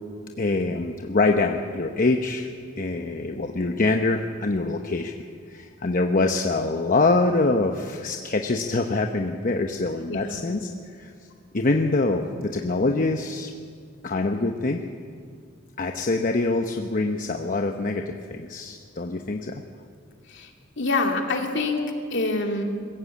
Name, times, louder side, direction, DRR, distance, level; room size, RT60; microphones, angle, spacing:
voice 1, 0.4-2.5 2.8-5.1 5.5-10.7 11.0-11.1 11.5-13.5 14.0-14.8 15.8-19.6, left 3 dB, 40° left, 4 dB, 0.9 m, -24 dB
voice 2, 10.1-10.4 20.3-20.5 20.8-22.6, left 3 dB, 65° left, 2 dB, 2.6 m, -26 dB
22.5 x 15.5 x 8.5 m, 2.1 s
head